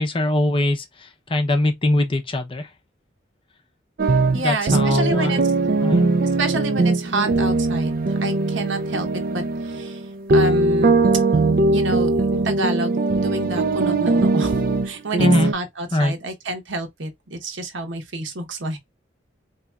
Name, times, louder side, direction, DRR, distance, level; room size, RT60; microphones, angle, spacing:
voice 1, 0.0-2.7 4.3-5.4 5.8-6.1 15.2-15.5 15.9-16.2, left 1 dB, 30° left, 0.6 m, -22 dB
sound 1, 4.0-15.5, right 3 dB, 50° right, 0.4 m, -20 dB
voice 2, 4.3-5.4 6.4-10.0 10.3-11.0 11.7-14.6 14.8-18.8, right 2 dB, 90° right, 1.1 m, -28 dB
4.0 x 2.9 x 2.3 m
head